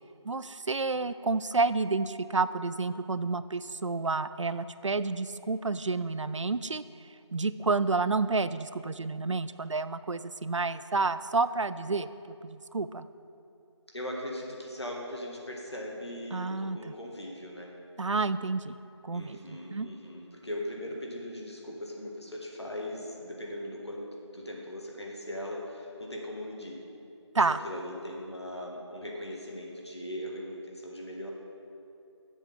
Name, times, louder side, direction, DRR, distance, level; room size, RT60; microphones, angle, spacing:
voice 1, 0.2-6.8 7.3-12.1 12.4-13.1 16.3-16.8 18.0-18.8 19.0-19.9 27.3-27.6, right 3 dB, 90° right, 14 dB, 0.4 m, -30 dB
voice 2, 13.9-17.7 19.1-24.1 24.3-26.8 27.5-31.3, left 1 dB, 65° left, -1 dB, 1.7 m, -39 dB
12.0 x 7.3 x 3.5 m, 2.7 s
figure-of-eight pair, 175°, 15 cm